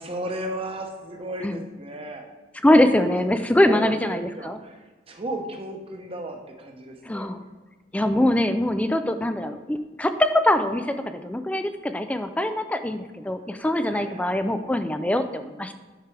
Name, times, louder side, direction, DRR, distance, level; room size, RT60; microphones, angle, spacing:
voice 1, 0.0-2.2 3.1-3.2 3.6-7.3 9.4-9.6 13.9-14.4, right 1 dB, 30° right, 3 dB, 0.9 m, -35 dB
voice 2, 2.6-4.6 7.1-7.4 7.9-15.7, left 1 dB, 5° left, 9 dB, 0.3 m, -23 dB
10.0 x 6.0 x 3.3 m, 1.3 s
head